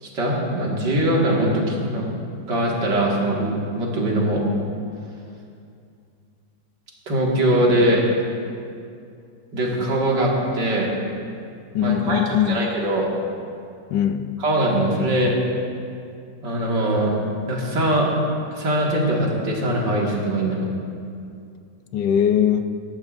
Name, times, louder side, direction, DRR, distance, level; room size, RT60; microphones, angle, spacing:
voice 1, 0.0-2.2 2.5-4.4 7.1-8.0 9.5-10.9 11.8-13.1 14.4-15.4 16.4-17.1 17.5-18.1 18.6-20.6, right 1 dB, 70° right, -3 dB, 2.6 m, -21 dB
voice 2, 11.7-12.7 13.9-14.3 21.9-22.8, left 9 dB, 75° left, 9 dB, 1.2 m, -21 dB
19.5 x 13.5 x 2.6 m, 2.4 s
omnidirectional pair, 1.9 m